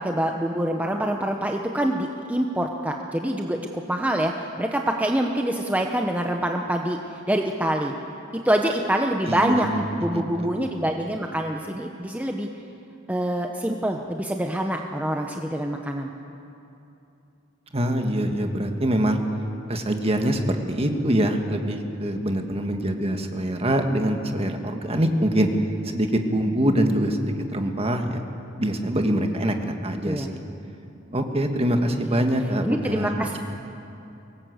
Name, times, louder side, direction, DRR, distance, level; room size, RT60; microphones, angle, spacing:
voice 1, 0.0-7.0 7.3-7.9 8.3-9.7 10.0-12.5 13.1-16.1 30.0-30.3 32.0-32.2 32.6-33.4, right 1 dB, 10° right, 2 dB, 0.9 m, -25 dB
voice 2, 9.3-10.7 17.7-19.2 19.7-25.5 25.8-28.2 28.6-30.4 31.1-33.1, right 1 dB, 30° right, 5 dB, 1.7 m, -24 dB
23.5 x 19.0 x 8.1 m, 2.8 s
head